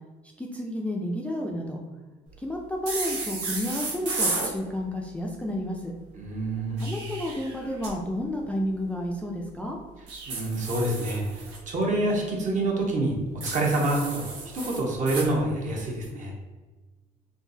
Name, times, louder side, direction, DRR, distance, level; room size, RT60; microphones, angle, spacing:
voice 1, 0.4-1.8 2.4-5.9 6.8-9.8, left 1 dB, 10° left, -1 dB, 0.3 m, -31 dB
sound 1, 2.9-4.5 6.6-7.9 10.1-11.6 13.4-15.3, right 3 dB, 90° right, 1.1 m, -33 dB
voice 2, 6.1-6.9 10.3-13.1 13.5-14.2 14.5-16.3, right 2 dB, 50° right, -1 dB, 1.0 m, -27 dB
3.6 x 2.7 x 2.7 m, 1.2 s
cardioid pair, 110°, 17 cm